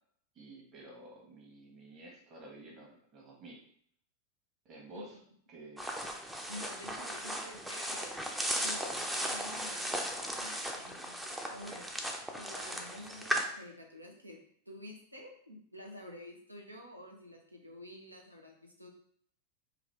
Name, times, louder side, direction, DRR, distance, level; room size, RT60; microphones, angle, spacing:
voice 1, 0.3-3.6 4.6-5.2 5.5-5.8, right 2 dB, 35° right, -1 dB, 1.2 m, -51 dB
sound 1, 5.8-13.4, equal, 5° right, 0.5 m, -37 dB
voice 2, 6.5-8.2 8.6-11.9 12.4-14.4 14.7-18.9, left 1 dB, 85° right, 1 dB, 0.7 m, -49 dB
4.8 x 2.5 x 3.3 m, 0.64 s
figure-of-eight pair, 90°, 0 cm